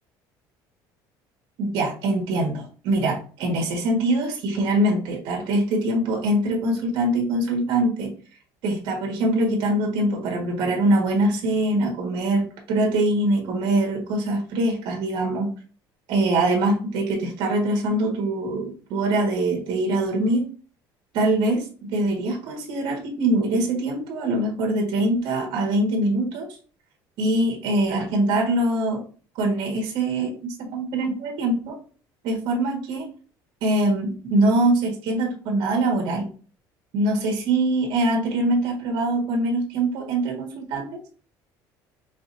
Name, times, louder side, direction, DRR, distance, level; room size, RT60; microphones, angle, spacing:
voice 1, 1.6-8.1 8.6-15.5 16.1-20.5 21.1-26.5 27.2-29.0 29.4-31.8 32.2-33.1 33.6-36.3 36.9-41.0, right 1 dB, 65° right, 0 dB, 1.7 m, -23 dB
6.2 x 3.2 x 2.7 m, 0.40 s
cardioid pair, 165°, 9 cm